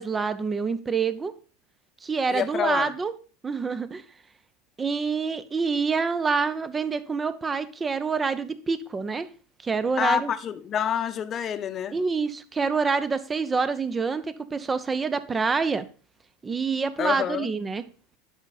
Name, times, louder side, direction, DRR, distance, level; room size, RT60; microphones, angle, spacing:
voice 1, 0.0-1.3 2.0-3.1 3.4-4.0 4.8-9.3 9.6-10.3 11.9-15.9 16.4-17.8, right 5 dB, 20° right, 0.8 m, -27 dB
voice 2, 2.3-2.9 10.0-11.9 17.0-17.5, left 9 dB, 35° left, 0.9 m, -27 dB
10.5 x 5.5 x 4.1 m
hypercardioid pair, 95°, 0 cm